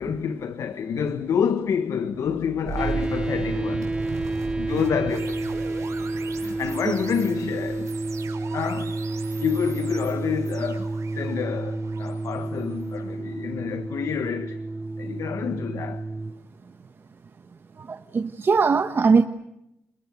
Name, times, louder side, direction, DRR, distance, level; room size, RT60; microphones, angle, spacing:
voice 1, 0.0-3.9 4.6-5.8 6.4-8.0 8.5-9.0 9.4-14.6 15.0-16.0, left 7 dB, 80° left, 1.4 m, -28 dB
sound 1, 2.7-13.7, right 5 dB, 75° right, 5.6 m, -38 dB
sound 2, 2.8-16.3, right 2 dB, 15° right, 1.2 m, -30 dB
voice 2, 17.8-19.2, right 5 dB, 45° right, 1.1 m, -20 dB
30.0 x 21.0 x 9.4 m
cardioid pair, 100°, 5 cm